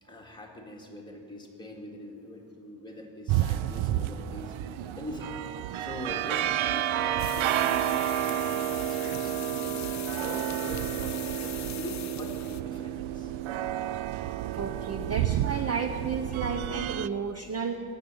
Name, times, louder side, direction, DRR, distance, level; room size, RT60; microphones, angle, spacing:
voice 1, 0.0-4.5 4.9-5.3 5.8-13.6, left 1 dB, 10° left, -1 dB, 2.0 m, -43 dB
sound 1, 3.3-17.1, right 12 dB, 75° right, 0.6 m, -30 dB
sound 2, 7.2-12.6, left 11 dB, 40° left, 0.4 m, -41 dB
voice 2, 14.5-17.8, right 5 dB, 30° right, 6 dB, 0.6 m, -32 dB
16.0 x 7.2 x 9.5 m, 2.5 s
cardioid pair, 145°, 47 cm